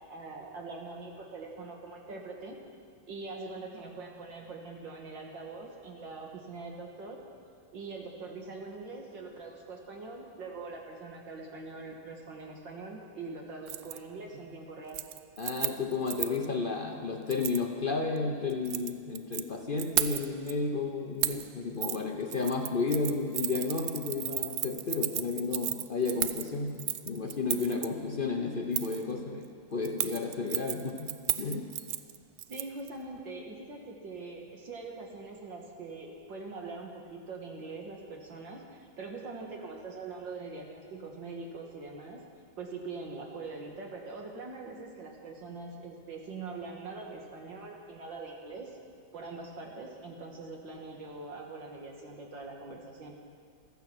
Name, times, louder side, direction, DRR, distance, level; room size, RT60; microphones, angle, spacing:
voice 1, 0.0-2.6 3.1-7.2 7.7-15.0 32.5-42.2 42.6-48.8 49.1-53.2, right 3 dB, 65° right, 1 dB, 2.3 m, -43 dB
Keys jangling, 13.7-14.0 14.3-14.6 14.9-16.5 17.3-17.6 18.5-19.4 19.8-20.5 21.2-21.5 21.8-22.0 22.3-27.9 28.7-29.0 29.8-32.9 33.2-33.3, right 13 dB, 85° right, 0.8 m, -34 dB
voice 2, 15.4-31.7, left 4 dB, 65° left, 3 dB, 0.5 m, -32 dB
15.0 x 14.0 x 6.1 m, 2.1 s
omnidirectional pair, 2.2 m